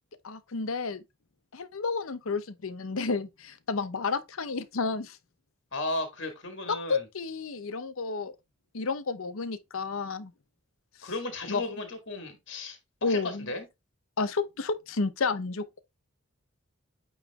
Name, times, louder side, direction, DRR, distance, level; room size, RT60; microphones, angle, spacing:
voice 1, 0.2-1.0 1.5-5.2 6.7-8.4 8.7-10.3 11.0-11.1 11.5-11.6 13.0-13.5 14.2-15.8, left 4 dB, 80° left, 0.7 m, -31 dB
voice 2, 5.7-7.0 11.0-12.8 13.1-13.6, left 2 dB, 60° left, 1.7 m, -35 dB
8.8 x 3.1 x 3.5 m
head